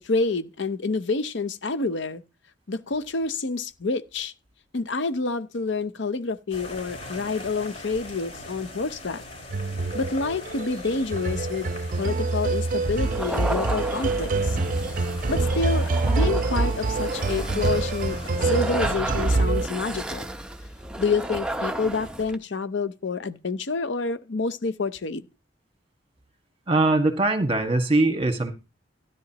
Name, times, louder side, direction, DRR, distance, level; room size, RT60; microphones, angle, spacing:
voice 1, 0.0-2.2 2.7-4.3 4.7-9.2 9.9-11.7 12.0-14.6 15.3-20.3 21.0-25.2, left 4 dB, 70° left, 0.7 m, -28 dB
sound 1, 6.5-18.9, left 2 dB, 40° left, 4.9 m, -41 dB
sound 2, 9.5-19.7, right 3 dB, 45° right, 0.6 m, -26 dB
sound 3, 13.0-22.4, right 1 dB, 5° right, 0.8 m, -33 dB
voice 2, 26.7-28.5, right 2 dB, 30° right, 1.8 m, -21 dB
13.5 x 11.0 x 3.0 m
head